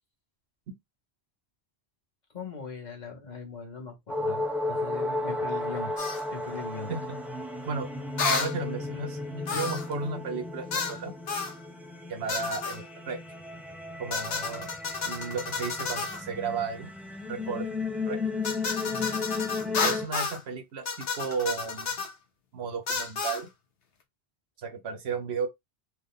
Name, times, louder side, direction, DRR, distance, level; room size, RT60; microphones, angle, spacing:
voice 1, 2.3-5.9 6.3-6.9 9.5-9.7 18.8-19.3, left 4 dB, 45° left, 1.3 m, -40 dB
sound 1, 4.1-20.1, left 2 dB, ahead, 0.5 m, -34 dB
sound 2, 6.0-6.2 8.2-8.5 9.5-9.9 10.7-11.0 11.3-11.6 12.3-12.8 14.1-16.2 18.4-20.4 20.9-22.1 22.9-23.4, left 5 dB, 65° left, 1.1 m, -31 dB
voice 2, 8.2-11.1 12.1-13.2 14.0-14.7 15.0-16.9 17.3-17.7 18.1-18.2 19.8-22.1 22.5-23.5 24.6-25.5, right 5 dB, 75° right, 1.0 m, -34 dB
3.5 x 2.4 x 3.6 m
omnidirectional pair, 1.1 m